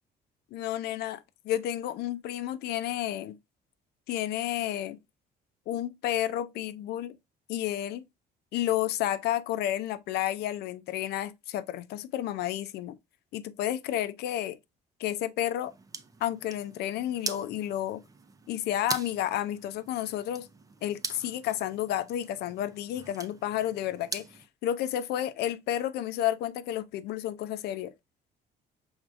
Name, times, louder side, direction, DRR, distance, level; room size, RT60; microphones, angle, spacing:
voice 1, 0.5-3.4 4.1-5.0 5.7-7.2 7.5-8.0 8.5-13.0 13.3-14.6 15.0-15.7 16.2-18.0 18.5-20.5 20.8-24.3 24.6-27.9, left 12 dB, 75° left, 0.5 m, -31 dB
sound 1, 15.6-24.5, right 4 dB, 20° right, 0.5 m, -42 dB
4.9 x 3.5 x 2.5 m
cardioid pair, 110°, 17 cm